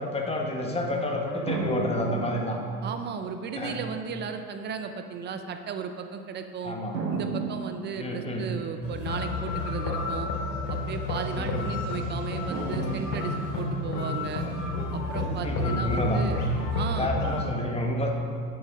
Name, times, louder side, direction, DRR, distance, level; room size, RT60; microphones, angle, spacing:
voice 1, 0.0-2.6 3.5-3.8 6.6-6.9 8.0-8.5 11.3-11.7 15.3-16.2 16.9-18.1, left 1 dB, 10° left, 1 dB, 1.6 m, -29 dB
sound 1, 1.5-3.2 4.2-4.3 6.9-8.7 12.5-13.8, right 3 dB, 85° right, 1.8 m, -34 dB
voice 2, 2.8-6.8 7.1-10.3 10.7-14.4 14.9-16.4 16.7-17.1, right 6 dB, 20° right, 7 dB, 0.6 m, -35 dB
sound 2, 8.8-17.4, left 2 dB, 50° left, 2.5 m, -30 dB
9.7 x 7.9 x 5.1 m, 2.3 s
hypercardioid pair, 100°, 48 cm